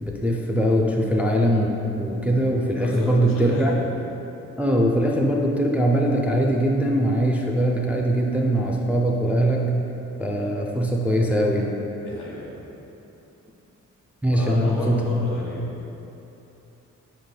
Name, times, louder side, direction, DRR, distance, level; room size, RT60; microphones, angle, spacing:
voice 1, 0.0-3.7 4.6-9.7 10.2-11.7 14.2-15.3, equal, 5° right, -1 dB, 0.3 m, -21 dB
voice 2, 2.8-3.9 12.0-12.6 14.3-15.8, left 1 dB, 85° left, -6 dB, 1.0 m, -33 dB
5.0 x 3.1 x 2.2 m, 3.0 s
cardioid pair, 55°, 32 cm